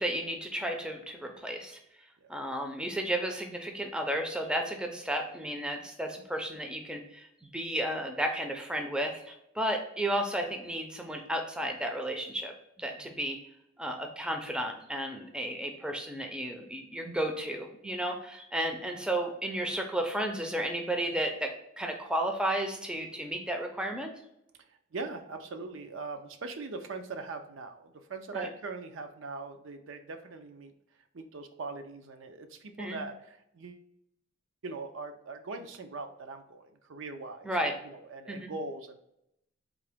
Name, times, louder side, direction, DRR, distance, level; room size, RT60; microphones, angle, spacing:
voice 1, 0.0-1.8 2.3-12.5 12.8-13.4 13.8-21.5 21.8-24.1 28.3-28.5 32.8-33.0 37.4-37.7 38.3-38.5, right 1 dB, 5° right, 3 dB, 0.5 m, -33 dB
voice 2, 24.9-30.7 31.1-33.8 34.6-39.0, right 3 dB, 75° right, 7 dB, 0.5 m, -41 dB
3.8 x 2.8 x 3.4 m, 0.80 s
head